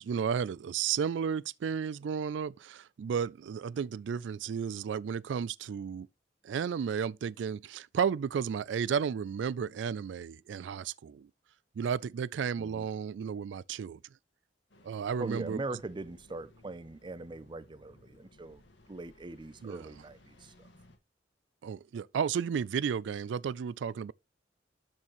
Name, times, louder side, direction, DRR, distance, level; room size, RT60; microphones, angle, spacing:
voice 1, 0.0-6.1 6.4-11.3 11.8-14.0 14.8-15.6 19.6-19.9 21.6-24.1, right 7 dB, 85° right, 0.3 m, -33 dB
Engine starting, 14.7-21.0, left 1 dB, 90° left, 1.9 m, -60 dB
voice 2, 15.2-18.6 18.9-20.7, right 2 dB, 25° right, 0.5 m, -41 dB
12.5 x 4.5 x 3.0 m
head